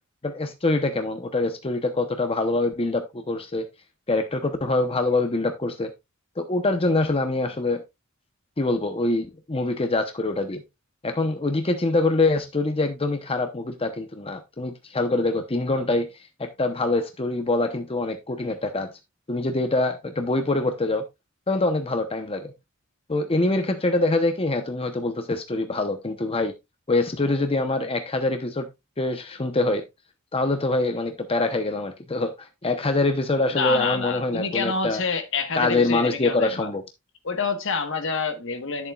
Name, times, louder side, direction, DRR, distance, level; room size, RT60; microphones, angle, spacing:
voice 1, 0.2-3.7 4.1-5.9 6.4-7.8 8.6-10.6 11.0-16.1 16.4-18.9 19.3-21.1 21.5-22.5 23.1-26.5 26.9-28.7 29.0-29.8 30.3-35.0 35.5-36.8, left 2 dB, 25° left, 0.8 m, -24 dB
voice 2, 33.5-36.7 37.2-38.9, left 4 dB, 65° left, 1.3 m, -27 dB
10.5 x 7.0 x 2.3 m
head